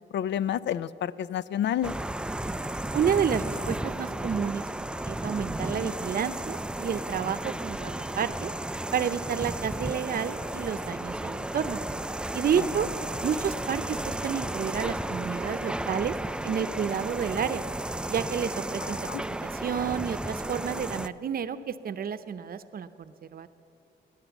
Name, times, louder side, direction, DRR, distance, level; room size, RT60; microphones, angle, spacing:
voice 1, 0.1-1.9 12.6-12.7 18.8-19.2, left 10 dB, 65° left, 18 dB, 0.5 m, -30 dB
sound 1, 1.8-21.1, right 1 dB, 5° right, 0.3 m, -33 dB
voice 2, 2.9-4.7 5.1-8.5 8.9-11.8 12.3-12.9 13.2-16.2 16.4-17.6 18.1-19.0 19.4-23.5, right 7 dB, 50° right, 12 dB, 0.7 m, -30 dB
17.0 x 11.0 x 7.1 m, 2.8 s
cardioid pair, 90°, 20 cm